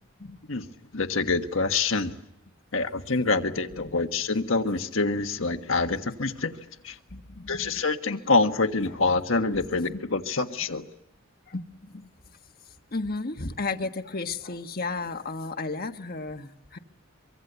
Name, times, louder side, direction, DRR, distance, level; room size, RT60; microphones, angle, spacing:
voice 1, 0.9-2.1 2.7-6.5 6.8-6.9 7.5-10.8, left 3 dB, 70° left, 7 dB, 1.5 m, -26 dB
voice 2, 7.1-7.8 8.9-9.0 9.6-10.0 11.5-12.1 12.9-16.8, left 3 dB, 45° left, 6 dB, 1.5 m, -34 dB
24.5 x 24.0 x 8.2 m, 0.85 s
head